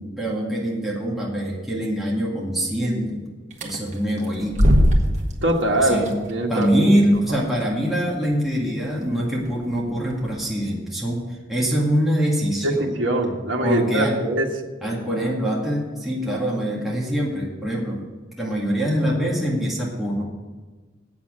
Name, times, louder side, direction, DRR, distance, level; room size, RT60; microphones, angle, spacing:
voice 1, 0.0-3.2 3.6-4.8 5.8-6.1 6.5-12.9 13.6-14.2 14.8-18.0 18.4-20.2, equal, ahead, -5 dB, 2.0 m, -24 dB
sound 1, 3.5-10.5, equal, 40° right, 1.5 m, -25 dB
voice 2, 5.4-6.0 6.3-6.9 12.6-14.5, right 1 dB, 70° right, -1 dB, 1.6 m, -22 dB
8.6 x 7.3 x 8.7 m, 1.3 s
head